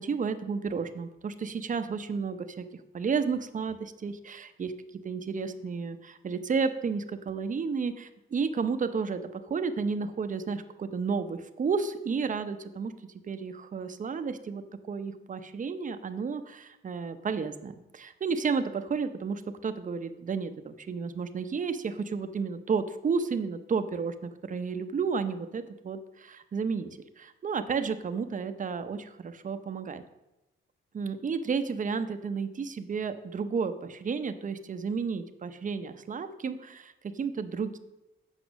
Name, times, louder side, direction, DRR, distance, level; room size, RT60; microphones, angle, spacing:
voice 1, 0.0-2.6 2.9-4.7 5.0-12.9 13.3-26.9 27.2-30.0 30.9-37.8, right 5 dB, 40° right, 9 dB, 0.7 m, -32 dB
8.1 x 5.8 x 6.1 m, 0.97 s
cardioid pair, 110°, 21 cm